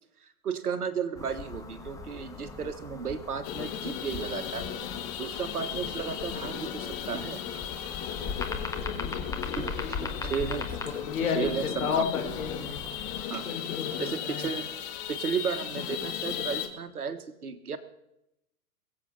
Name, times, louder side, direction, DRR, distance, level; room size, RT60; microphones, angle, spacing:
voice 1, 0.2-4.7 5.2-7.4 9.6-10.7 11.3-12.0 13.3-13.5 14.0-14.7 15.1-17.8, right 6 dB, 70° right, 11 dB, 1.5 m, -34 dB
sound 1, 1.2-13.3, left 4 dB, 5° left, 1.4 m, -39 dB
sound 2, 3.4-16.7, left 9 dB, 30° left, 1.6 m, -36 dB
voice 2, 8.9-10.4 11.0-12.8 13.5-13.9 14.2-14.5, left 6 dB, 65° left, 3 dB, 3.7 m, -33 dB
22.0 x 7.9 x 5.7 m, 0.85 s
figure-of-eight pair, 105°, 45 cm